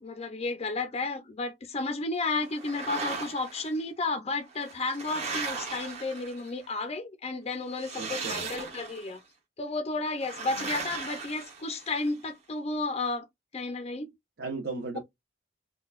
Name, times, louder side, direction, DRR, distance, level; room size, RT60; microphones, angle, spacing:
voice 1, 0.0-9.2 9.6-13.3 13.5-14.1, left 3 dB, 35° left, 0.5 m, -32 dB
sound 1, 2.4-3.7 4.5-6.6 7.7-9.1 10.2-12.1, right 4 dB, 40° right, 1.0 m, -37 dB
voice 2, 7.9-8.5 10.5-10.7 14.4-15.0, right 3 dB, 70° right, 0.9 m, -36 dB
3.8 x 2.2 x 2.3 m
head